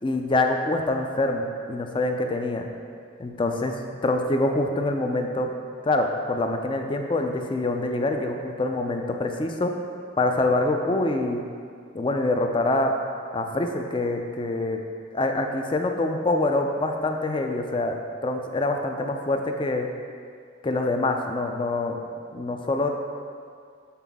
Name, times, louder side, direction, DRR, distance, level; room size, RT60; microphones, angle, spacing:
voice 1, 0.0-2.7 3.2-5.5 5.8-9.7 10.2-11.4 11.9-13.0 13.3-14.8 15.1-19.9 20.6-22.0 22.3-22.9, left 2 dB, 25° left, 4 dB, 0.4 m, -25 dB
6.9 x 5.7 x 3.6 m, 2.2 s
head